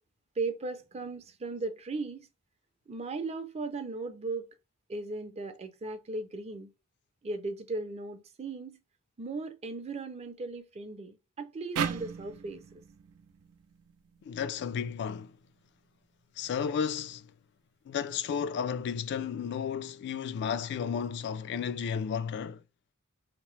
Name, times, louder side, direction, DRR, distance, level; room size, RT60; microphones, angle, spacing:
voice 1, 0.4-2.3 2.9-4.5 4.9-6.7 7.2-8.8 9.2-12.7, right 3 dB, 30° right, 0.5 m, -37 dB
sound 1, 11.8-15.0, right 7 dB, 85° right, 0.4 m, -38 dB
voice 2, 14.2-15.4 16.4-17.3 17.9-22.6, left 7 dB, 55° left, 0.3 m, -33 dB
2.9 x 2.0 x 3.1 m
head